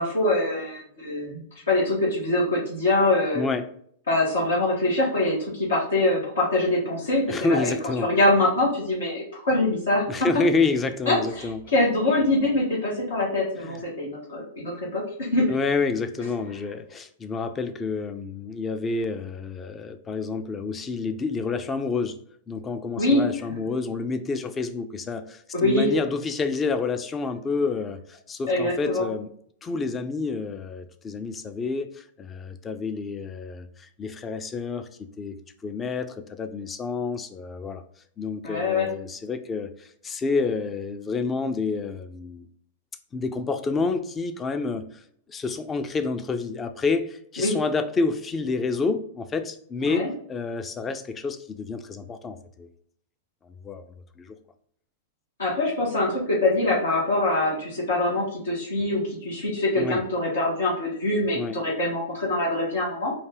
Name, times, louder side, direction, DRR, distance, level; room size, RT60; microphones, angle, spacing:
voice 1, 0.0-3.4 4.1-7.7 8.0-10.0 11.1-15.5 23.0-23.3 25.5-25.9 28.5-29.0 38.4-38.9 47.4-47.5 49.8-50.1 55.4-63.1, left 2 dB, 80° left, -6 dB, 1.8 m, -24 dB
voice 2, 3.3-3.7 7.3-8.1 10.1-11.6 13.6-13.8 14.6-14.8 15.5-22.2 22.5-29.3 29.6-35.4 35.6-37.8 38.2-42.5 43.1-45.0 45.3-52.7 53.4-53.8 54.2-54.4 59.8-60.0 61.3-61.6, left 4 dB, 20° left, 10 dB, 0.4 m, -29 dB
4.3 x 2.7 x 3.8 m, 0.65 s
hypercardioid pair, 105°, 0 cm